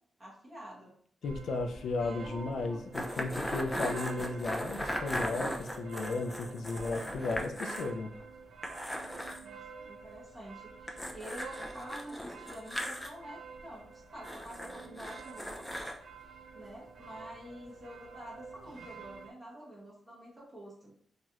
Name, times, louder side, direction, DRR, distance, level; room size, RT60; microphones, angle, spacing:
voice 1, 0.2-0.9 2.0-2.8 9.4-15.6 16.5-20.9, right 1 dB, 25° right, -5 dB, 1.0 m, -48 dB
voice 2, 1.2-8.1, left 3 dB, 75° left, 4 dB, 0.3 m, -35 dB
sound 1, 1.2-19.3, right 5 dB, 70° right, 0.5 m, -49 dB
sound 2, 2.9-7.9 8.2-8.3 8.6-9.4 10.9-13.1 14.2-16.0, equal, 10° left, 0.4 m, -38 dB
3.0 x 2.4 x 2.8 m, 0.63 s
cardioid pair, 115°, 0 cm